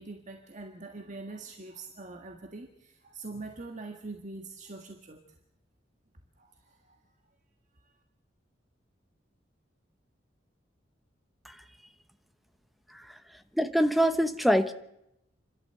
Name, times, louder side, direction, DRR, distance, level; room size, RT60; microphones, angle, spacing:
voice 1, 0.0-5.2 6.4-7.0 7.8-7.9, right 3 dB, 40° right, 3 dB, 1.7 m, -43 dB
voice 2, 13.5-14.7, equal, ahead, 9 dB, 1.0 m, -25 dB
29.0 x 12.5 x 8.0 m, 0.83 s
head